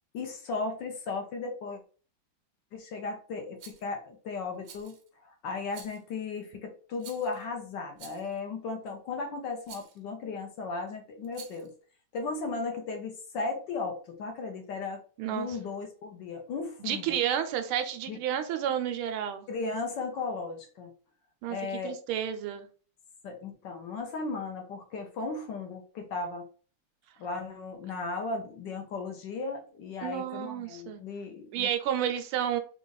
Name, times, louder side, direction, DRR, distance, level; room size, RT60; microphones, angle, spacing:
voice 1, 0.1-1.8 2.7-4.9 5.2-11.7 12.1-15.0 15.3-17.2 18.1-18.2 19.5-20.9 21.5-22.0 23.2-26.5 27.2-31.7, left 4 dB, 65° left, 4 dB, 1.2 m, -36 dB
Rattle, 3.6-3.9 4.6-5.1 5.7-6.1 7.0-7.4 8.0-8.4 9.6-10.0 11.2-11.7, right 7 dB, 65° right, 1.1 m, -49 dB
voice 2, 15.2-15.6 16.8-19.5 21.4-21.6 21.8-22.7 30.0-31.0 31.5-32.6, right 10 dB, 80° right, 8 dB, 1.4 m, -31 dB
4.0 x 2.4 x 3.9 m, 0.39 s
omnidirectional pair, 2.3 m